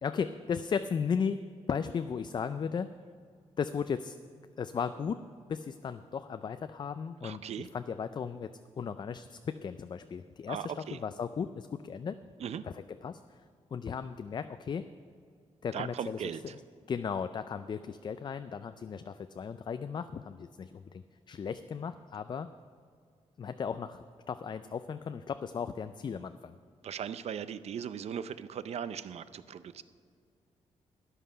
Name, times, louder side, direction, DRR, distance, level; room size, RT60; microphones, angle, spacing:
voice 1, 0.0-2.9 3.6-4.2 4.6-5.2 5.5-12.2 12.6-13.4 13.7-14.9 15.6-16.2 16.9-22.5 23.4-26.6, left 6 dB, 40° left, 10 dB, 0.3 m, -36 dB
voice 2, 7.2-7.7 10.5-11.0 12.4-12.6 15.7-16.5 26.8-29.8, right 8 dB, 60° right, 14 dB, 0.5 m, -38 dB
12.5 x 9.8 x 5.6 m, 2.2 s
cardioid pair, 100°, 12 cm